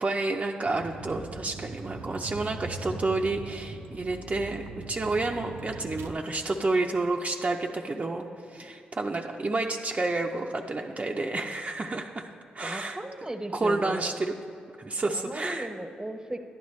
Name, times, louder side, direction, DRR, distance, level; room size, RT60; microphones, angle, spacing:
voice 1, 0.0-12.2 12.5-13.0 13.5-14.3 14.8-15.7, right 2 dB, 35° right, 1 dB, 0.6 m, -30 dB
Vehicle, 0.7-6.1, right 3 dB, 80° right, 0.6 m, -40 dB
voice 2, 8.3-8.7 12.6-14.2 15.1-16.4, right 1 dB, 20° right, 8 dB, 0.9 m, -37 dB
11.0 x 9.4 x 3.2 m, 2.7 s
supercardioid pair, 45°, 4 cm